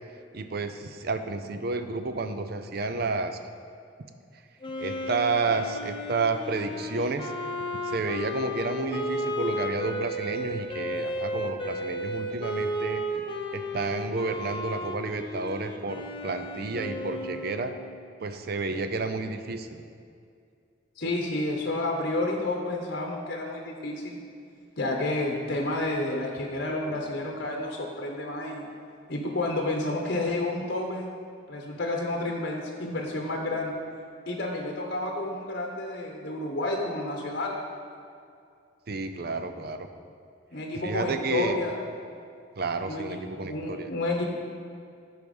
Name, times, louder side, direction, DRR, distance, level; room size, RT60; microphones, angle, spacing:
voice 1, 0.3-3.4 4.8-7.3 7.8-13.2 13.5-17.7 18.2-19.8 38.9-39.9 40.8-41.6 42.6-43.9, right 3 dB, 55° right, 8 dB, 0.6 m, -31 dB
Wind instrument woodwind instrument, 4.6-18.0, equal, 30° left, 0.8 m, -34 dB
voice 2, 21.0-24.2 24.8-28.6 29.1-31.1 31.5-33.8 34.3-37.6 40.5-41.8 42.9-43.2 43.5-44.2, left 2 dB, 55° left, 0 dB, 1.0 m, -30 dB
13.5 x 4.7 x 5.4 m, 2.4 s
head